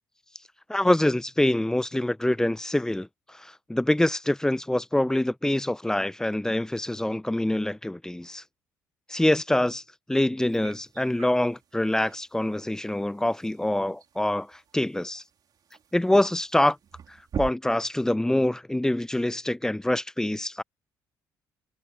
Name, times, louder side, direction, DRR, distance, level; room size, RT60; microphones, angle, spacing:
voice 1, 0.7-3.1 3.4-8.4 9.1-9.8 10.1-15.2 15.9-16.8 17.1-20.6, left 1 dB, 5° left, 0.7 m, -25 dB
sound 1, 10.4-17.5, right 8 dB, 55° right, 2.5 m, -43 dB
supercardioid pair, 65°, 8 cm